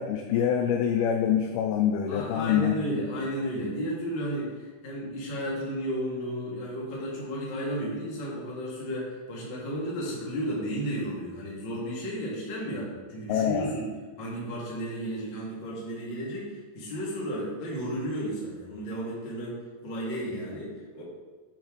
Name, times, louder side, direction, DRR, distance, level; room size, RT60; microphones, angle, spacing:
voice 1, 0.0-2.8 13.3-13.7, left 9 dB, 85° left, 4 dB, 2.2 m, -25 dB
voice 2, 2.1-13.8 14.2-21.0, equal, 45° left, -6 dB, 1.5 m, -33 dB
8.9 x 3.3 x 5.1 m, 1.4 s
omnidirectional pair, 4.9 m